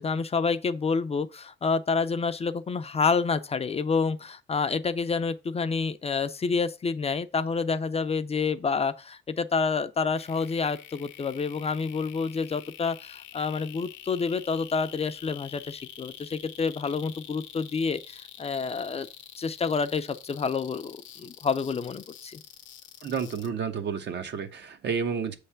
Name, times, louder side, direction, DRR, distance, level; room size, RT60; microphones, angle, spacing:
voice 1, 0.0-19.1 19.4-22.4, left 5 dB, 30° left, 0.5 m, -28 dB
sound 1, 10.2-23.5, left 10 dB, 70° left, 0.7 m, -46 dB
voice 2, 23.0-25.4, right 6 dB, 60° right, 1.0 m, -30 dB
7.2 x 3.3 x 5.7 m
cardioid pair, 90°, 20 cm